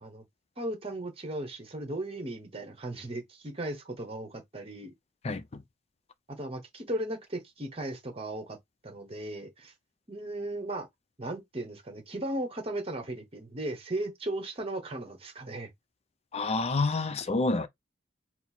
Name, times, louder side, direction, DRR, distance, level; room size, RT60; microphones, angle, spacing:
voice 1, 0.6-4.9 6.3-8.6 8.8-9.7 10.1-10.9 11.2-15.7, right 1 dB, 30° right, 1.0 m, -36 dB
voice 2, 16.3-17.7, left 3 dB, 35° left, 0.5 m, -28 dB
4.3 x 2.0 x 4.2 m
head